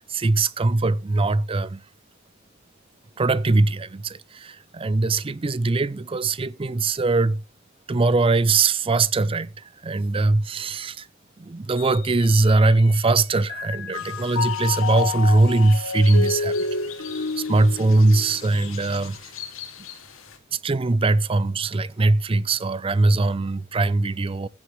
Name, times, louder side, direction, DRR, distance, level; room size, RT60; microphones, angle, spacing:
voice 1, 0.0-1.8 3.2-7.4 7.9-11.1 11.4-16.7 17.1-19.3 20.5-24.5, right 2 dB, 25° right, 0.5 m, -21 dB
Mallet percussion, 11.8-13.1 13.5-18.9, left 5 dB, 70° left, 0.8 m, -30 dB
sound 1, 13.9-20.4, left 9 dB, 90° left, 2.1 m, -41 dB
15.5 x 8.2 x 3.1 m
head